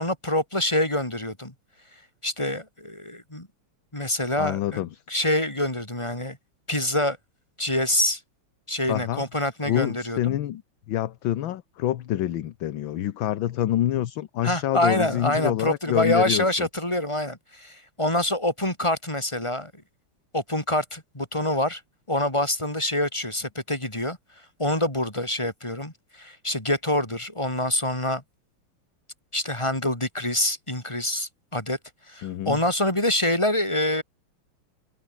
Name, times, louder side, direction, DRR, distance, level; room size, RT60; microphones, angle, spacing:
voice 1, 0.0-1.5 2.2-3.5 3.9-4.8 5.1-6.4 6.7-7.2 7.6-8.2 8.7-10.4 14.4-19.7 20.3-21.8 22.1-24.2 24.6-28.2 29.3-31.8 32.1-34.0, left 1 dB, 10° left, 3.8 m, -26 dB
voice 2, 4.4-5.0 8.9-9.2 9.6-10.6 10.9-16.7 32.2-32.6, left 12 dB, 65° left, 1.6 m, -27 dB
omnidirectional pair, 2.4 m